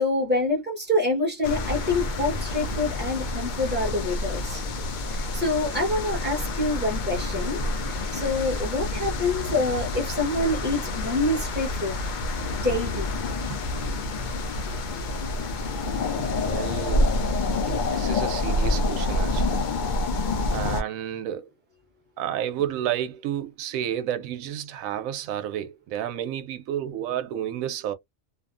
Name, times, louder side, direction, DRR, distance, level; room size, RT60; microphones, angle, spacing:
voice 1, 0.0-4.6 5.1-12.0 12.6-13.1, left 2 dB, 10° right, 0.8 m, -26 dB
sound 1, 1.4-20.8, left 2 dB, 90° left, 0.4 m, -28 dB
voice 2, 16.2-17.2 17.7-19.6 20.5-21.5 22.2-27.9, right 10 dB, 80° right, 1.0 m, -31 dB
2.6 x 2.1 x 2.4 m
omnidirectional pair, 1.4 m